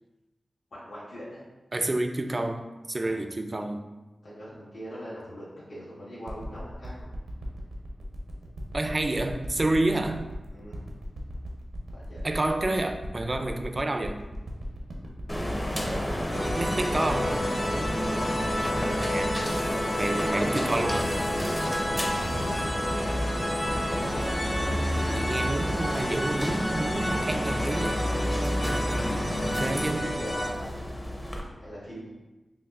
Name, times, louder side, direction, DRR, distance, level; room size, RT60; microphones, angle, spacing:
voice 1, 0.7-1.4 3.0-3.3 4.2-7.1 10.5-10.9 11.9-12.2 15.7-16.5 16.9-17.5 17.9-18.6 20.2-21.6 21.9-23.1 28.6-29.2 29.6-30.7 31.6-32.1, equal, 80° left, -10 dB, 1.4 m, -42 dB
voice 2, 1.7-3.8 8.7-10.3 12.2-14.3 16.6-17.3 19.0-19.4 20.0-21.1 25.1-28.0 29.5-30.1, right 2 dB, 40° right, 7 dB, 0.3 m, -29 dB
sound 1, 6.3-19.0 19.6-19.7, equal, 85° right, 0.6 m, -38 dB
sound 2, 15.3-31.4, equal, 20° left, 0.6 m, -30 dB
sound 3, 16.3-30.5, equal, 40° left, 1.1 m, -31 dB
5.7 x 2.1 x 2.4 m, 1.1 s
cardioid pair, 50°, 0 cm